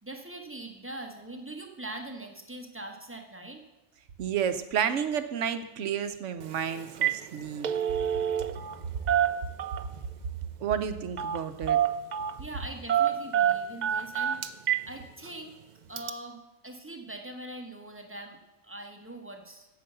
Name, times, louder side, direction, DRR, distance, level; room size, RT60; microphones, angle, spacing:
voice 1, 0.0-3.6 12.4-14.4 14.8-15.6 15.9-19.7, right 1 dB, 10° right, 3 dB, 1.1 m, -42 dB
voice 2, 4.2-7.7 10.6-11.8, right 8 dB, 65° right, 10 dB, 1.1 m, -31 dB
Telephone, 6.4-6.6 6.9-7.2 7.5-8.8 9.1-10.0 11.2-11.4 11.7-12.4 12.9-14.9 15.2-15.3 16.0-16.1, right 10 dB, 85° right, 0.4 m, -27 dB
9.0 x 7.9 x 6.8 m, 0.98 s
omnidirectional pair, 1.4 m